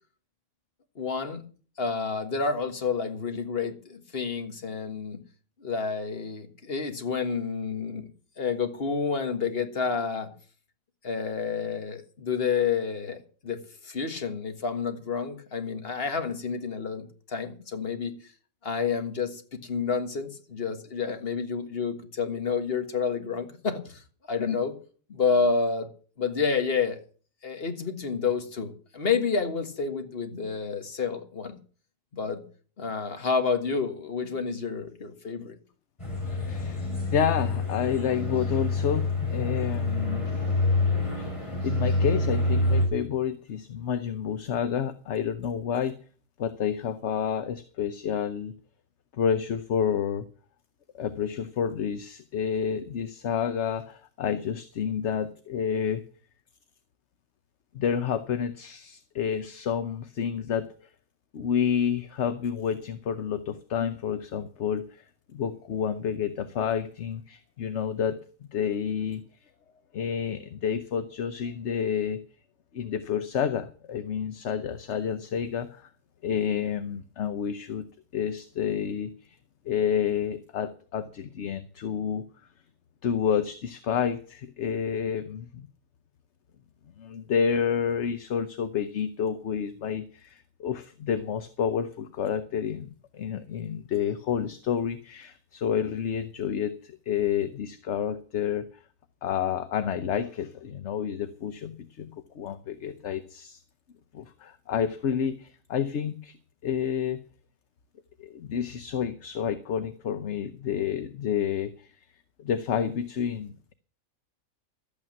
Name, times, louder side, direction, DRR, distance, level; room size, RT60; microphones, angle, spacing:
voice 1, 1.0-1.4 1.8-5.2 5.6-8.1 8.4-10.3 11.0-18.1 18.6-24.0 24.3-24.7 25.1-25.9 26.2-27.0 27.4-31.5 32.1-32.4 32.8-35.6, left 5 dB, 45° left, 7 dB, 1.8 m, -29 dB
sound 1, 36.0-42.9, left 2 dB, 20° left, 4.2 m, -27 dB
voice 2, 36.2-40.4 41.2-46.0 46.4-48.5 49.2-50.2 50.9-56.0 57.7-60.7 61.3-65.0 65.3-68.2 68.5-69.3 69.9-72.2 72.7-75.9 76.2-77.9 78.1-79.1 79.7-82.2 83.0-85.7 87.0-98.7 99.2-103.6 104.1-106.3 106.6-107.2 108.2-111.9 112.4-113.7, left 8 dB, 60° left, 10 dB, 1.1 m, -29 dB
12.5 x 8.6 x 7.4 m, 0.42 s
omnidirectional pair, 1.5 m